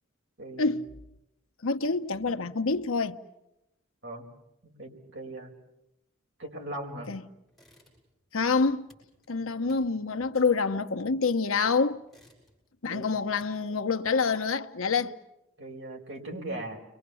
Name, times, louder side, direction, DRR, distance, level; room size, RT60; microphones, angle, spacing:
voice 1, 0.4-0.8 2.3-2.5 4.0-4.3 4.6-5.5 6.4-7.1 12.9-13.1 15.6-16.8, right 1 dB, 60° right, 4.8 m, -39 dB
voice 2, 1.6-3.2 7.1-7.2 8.3-8.9 9.3-12.0 12.8-15.1, left 4 dB, 90° left, 1.0 m, -27 dB
sound 1, 7.5-8.3 8.5-11.5 11.9-12.8 13.1-14.5, equal, ahead, 6.9 m, -62 dB
30.0 x 24.0 x 7.1 m
head